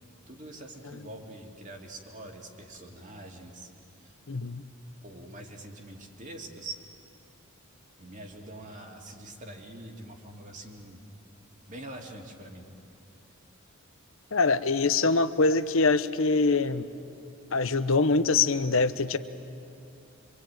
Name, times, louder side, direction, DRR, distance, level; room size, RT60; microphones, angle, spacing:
voice 1, 0.3-3.7 4.0-4.2 5.0-6.8 8.0-11.0 11.7-12.7, right 1 dB, 40° right, 2 dB, 2.8 m, -44 dB
voice 2, 4.3-4.6 14.3-16.9 17.5-19.2, left 3 dB, 70° left, 12 dB, 1.0 m, -24 dB
25.5 x 25.5 x 9.2 m, 2.7 s
head